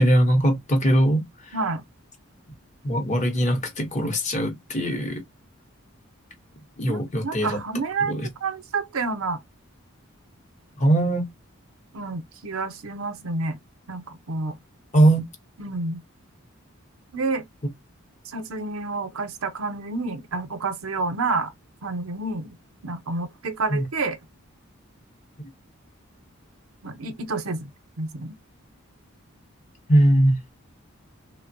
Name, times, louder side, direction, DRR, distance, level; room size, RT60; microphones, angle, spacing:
voice 1, 0.0-1.6 2.8-5.2 6.8-7.6 8.0-8.3 10.8-11.2 14.9-15.2 23.7-23.8 29.9-30.4, right 1 dB, 35° left, 0.7 m, -21 dB
voice 2, 1.5-1.8 6.9-9.4 11.9-13.6 13.9-14.6 15.6-16.0 17.1-17.4 18.3-21.5 21.8-22.5 22.8-24.2 26.8-27.7 28.0-28.4, right 3 dB, 80° right, 0.7 m, -29 dB
3.3 x 2.0 x 2.6 m
head